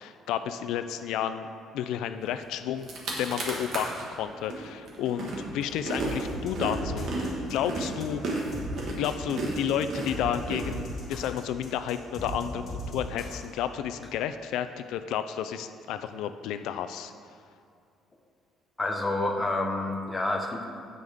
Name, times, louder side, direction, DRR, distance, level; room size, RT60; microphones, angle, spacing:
voice 1, 0.0-1.5 1.7-2.9 3.2-7.1 7.5-8.4 8.9-17.1, left 9 dB, 85° left, 10 dB, 0.3 m, -31 dB
sound 1, 2.4-2.5 2.8-4.0 4.5-11.2, right 2 dB, 50° right, 1.6 m, -33 dB
sound 2, 6.0-13.5, equal, 40° left, 2.1 m, -38 dB
voice 2, 18.8-20.6, left 2 dB, 10° left, 2 dB, 0.8 m, -28 dB
15.5 x 5.3 x 3.6 m, 2.4 s
cardioid pair, 180°, 0 cm